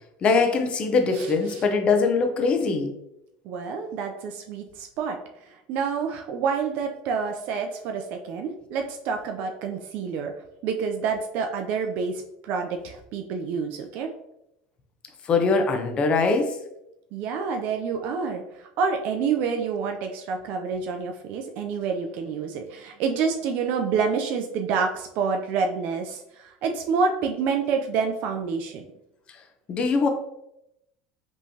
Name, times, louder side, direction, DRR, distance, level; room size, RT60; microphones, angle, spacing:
voice 1, 0.2-2.9 15.3-16.6 29.7-30.1, left 4 dB, 35° left, 5 dB, 0.7 m, -22 dB
voice 2, 1.1-1.6 3.4-5.2 5.5-10.3 10.6-14.1 17.1-28.8, right 5 dB, 60° right, 4 dB, 0.5 m, -28 dB
5.3 x 3.1 x 2.8 m, 0.83 s
supercardioid pair, 130°, 3 cm